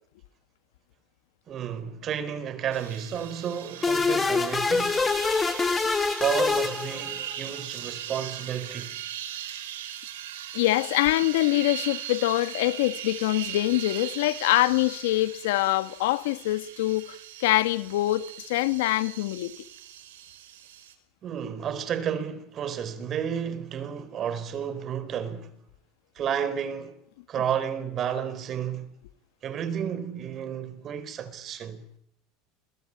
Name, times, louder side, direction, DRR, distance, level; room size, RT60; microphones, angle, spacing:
voice 1, 1.5-5.1 6.2-9.0 21.2-25.5 26.2-27.0 27.3-28.9 29.4-31.8, right 8 dB, 40° right, 4.4 m, -31 dB
sound 1, 2.7-20.9, right 11 dB, 90° right, 4.8 m, -39 dB
sound 2, 3.8-7.4, left 4 dB, 15° left, 1.5 m, -25 dB
voice 2, 10.5-17.0 17.4-19.5, left 17 dB, 85° left, 1.9 m, -24 dB
29.0 x 22.5 x 9.0 m
supercardioid pair, 115°, 0 cm